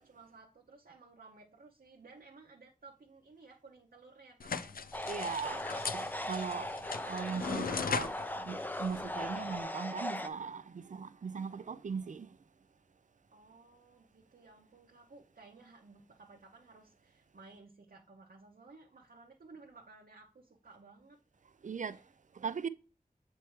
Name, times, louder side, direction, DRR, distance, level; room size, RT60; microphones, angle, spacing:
voice 1, 0.0-4.8 11.5-11.7 13.3-21.2 21.9-22.0, right 3 dB, 75° right, 0.8 m, -57 dB
sound 1, 4.4-9.6, left 5 dB, 75° left, 0.4 m, -39 dB
sound 2, 4.9-10.3, left 1 dB, 10° left, 0.5 m, -39 dB
voice 2, 5.1-5.6 5.9-6.7 7.1-12.3 21.6-22.0 22.4-22.7, right 6 dB, 55° right, 0.4 m, -39 dB
7.1 x 4.4 x 3.1 m
wide cardioid pair, 65°, 15 cm